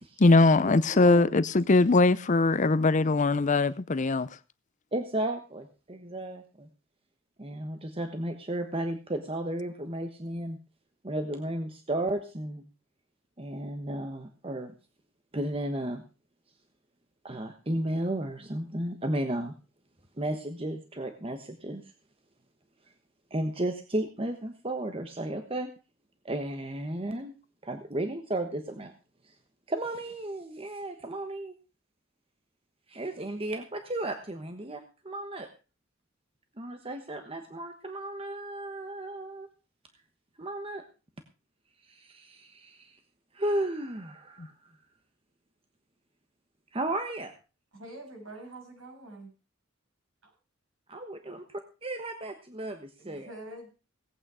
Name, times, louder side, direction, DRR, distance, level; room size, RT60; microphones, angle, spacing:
voice 1, 0.2-4.3, left 3 dB, 35° left, 0.6 m, -21 dB
voice 2, 0.9-1.2 4.9-6.7 7.4-10.6 11.0-12.6 13.4-14.7 15.3-16.0 17.2-19.5 20.2-21.8 23.3-25.7 26.2-27.3 27.6-28.9 29.2-29.3 29.7-31.5 32.9-35.5 36.6-39.5 40.4-40.8 41.9-43.0 43.3-44.5 46.7-47.3 50.9-53.3, right 1 dB, 25° right, 1.2 m, -34 dB
voice 3, 47.7-49.3 50.2-50.3 53.0-53.7, right 1 dB, 70° right, 7.6 m, -45 dB
17.5 x 8.8 x 4.9 m
head